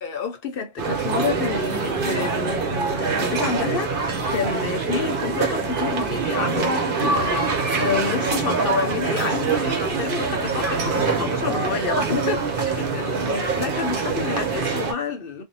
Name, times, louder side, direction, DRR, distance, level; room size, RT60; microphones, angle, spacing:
voice 1, 0.0-15.4, left 5 dB, 65° left, 0.9 m, -29 dB
sound 1, 0.8-14.9, right 4 dB, 55° right, 0.9 m, -24 dB
2.6 x 2.1 x 2.6 m
omnidirectional pair, 1.1 m